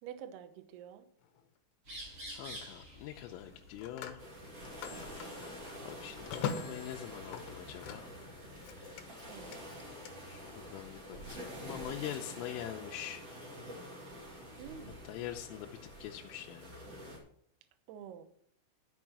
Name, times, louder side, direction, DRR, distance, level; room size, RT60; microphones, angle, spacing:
voice 1, 0.0-1.1 9.2-9.6 14.6-15.1 17.9-18.2, right 9 dB, 80° right, 9 dB, 2.4 m, -48 dB
Telephone, 1.2-1.5 3.4-8.3 8.6-10.1, left 7 dB, 70° left, 2.7 m, -43 dB
sound 1, 1.8-11.0, equal, 25° right, 5.6 m, -53 dB
voice 2, 2.3-4.3 5.9-8.1 10.3-13.2 15.1-16.8, left 12 dB, 90° left, 0 dB, 3.3 m, -44 dB
sound 2, 4.2-17.2, equal, 40° right, 2.6 m, -47 dB
12.0 x 6.2 x 6.1 m, 0.66 s
omnidirectional pair, 5.8 m